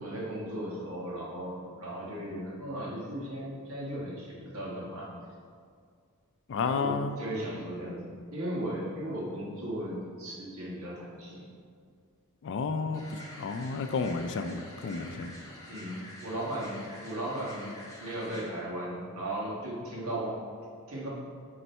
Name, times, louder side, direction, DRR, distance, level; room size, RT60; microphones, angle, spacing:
voice 1, 0.0-5.1 6.6-11.5 15.7-17.7 18.0-20.4 20.9-21.1, right 1 dB, 75° right, -5 dB, 1.5 m, -36 dB
voice 2, 6.5-7.2 12.4-15.3, left 4 dB, 55° left, 8 dB, 0.4 m, -32 dB
sound 1, 12.9-18.4, left 1 dB, 15° left, 1.1 m, -48 dB
8.1 x 3.2 x 4.4 m, 2.1 s
head